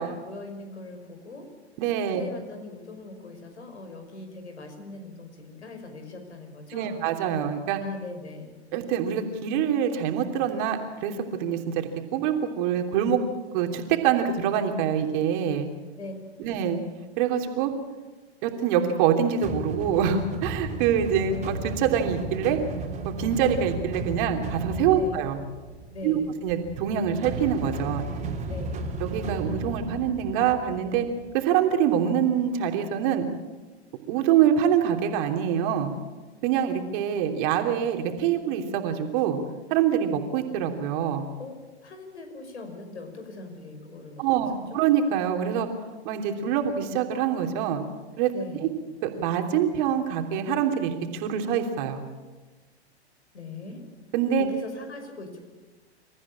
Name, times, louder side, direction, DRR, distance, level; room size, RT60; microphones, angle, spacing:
voice 1, 0.0-1.5 2.0-7.0 7.8-8.5 16.0-16.5 24.9-25.1 25.9-26.3 28.5-28.9 41.4-41.6 41.8-44.8 48.3-48.7 53.3-53.8 54.4-55.4, left 2 dB, 80° left, 5 dB, 5.8 m, -41 dB
voice 2, 1.8-2.2 6.7-7.8 8.7-13.2 13.5-15.7 16.4-16.8 17.2-17.7 18.4-22.6 23.0-25.4 26.0-26.2 26.4-28.0 29.0-31.1 31.3-33.3 34.1-35.9 36.4-39.4 39.7-41.3 44.2-45.7 46.0-47.8 48.2-48.3 49.0-52.0 54.1-54.5, right 8 dB, 45° right, 4 dB, 3.2 m, -25 dB
sound 1, 19.4-31.3, right 2 dB, 20° right, 3.5 m, -35 dB
27.5 x 14.5 x 8.8 m, 1.3 s
figure-of-eight pair, 100°, 33 cm